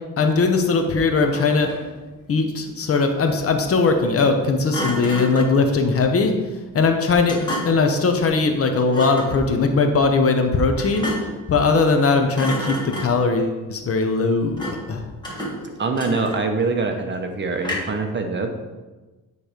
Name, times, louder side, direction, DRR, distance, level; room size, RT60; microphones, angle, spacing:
voice 1, 0.2-1.7 2.3-6.3 6.7-15.1, left 4 dB, 45° left, 5 dB, 0.8 m, -20 dB
Thump thud, 1.1-2.0 4.7-5.6 7.3-7.9 8.9-9.4 10.8-11.4 11.8-12.1 12.3-13.3 14.6-14.9 15.2-16.6 17.6-18.1, equal, 15° left, 1.8 m, -31 dB
voice 2, 15.8-18.8, right 3 dB, 35° right, 4 dB, 0.8 m, -24 dB
9.0 x 3.3 x 5.0 m, 1.2 s
cardioid pair, 125°, 33 cm